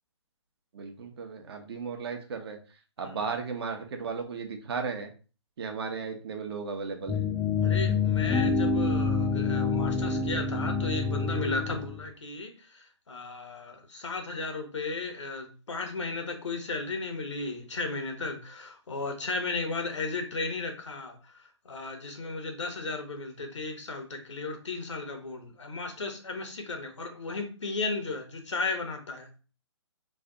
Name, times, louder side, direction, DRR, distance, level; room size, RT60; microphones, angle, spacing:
voice 1, 0.7-2.6 3.0-5.1 5.6-7.2, right 5 dB, 60° right, 0.8 m, -35 dB
sound 1, 7.1-12.1, left 4 dB, 5° left, 0.3 m, -27 dB
voice 2, 7.6-29.3, left 3 dB, 85° left, 1.0 m, -35 dB
3.2 x 2.3 x 3.7 m
hypercardioid pair, 140°, 15 cm